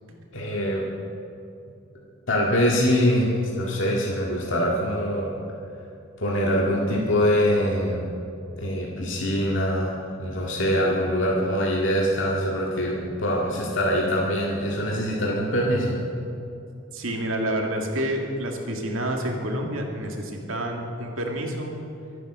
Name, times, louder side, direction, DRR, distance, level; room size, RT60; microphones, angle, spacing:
voice 1, 0.3-0.8 2.3-5.4 6.2-8.1 8.6-15.9, equal, 65° left, -3 dB, 2.0 m, -24 dB
voice 2, 16.9-21.8, right 1 dB, 80° right, 1 dB, 2.3 m, -28 dB
23.5 x 9.3 x 6.3 m, 2.7 s
head